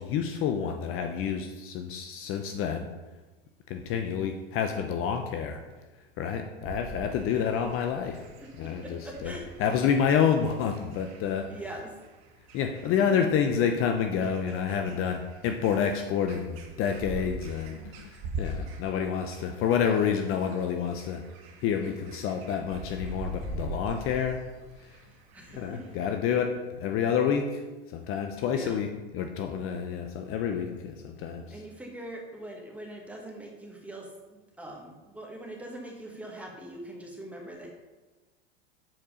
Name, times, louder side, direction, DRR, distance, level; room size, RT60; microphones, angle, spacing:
voice 1, 0.0-2.8 3.7-5.6 6.2-8.2 8.6-9.3 9.6-11.5 12.5-21.2 21.6-24.4 24.8-25.0 25.5-27.6 27.9-31.6, left 7 dB, 45° left, 5 dB, 0.7 m, -28 dB
sound 1, 6.6-26.2, right 1 dB, 60° right, 1.6 m, -43 dB
voice 2, 8.4-9.5 11.5-12.0 12.9-13.2 25.3-25.9 28.5-28.8 31.5-37.7, right 1 dB, 5° right, -1 dB, 1.8 m, -42 dB
7.6 x 4.6 x 5.0 m, 1.2 s
hypercardioid pair, 100°, 30 cm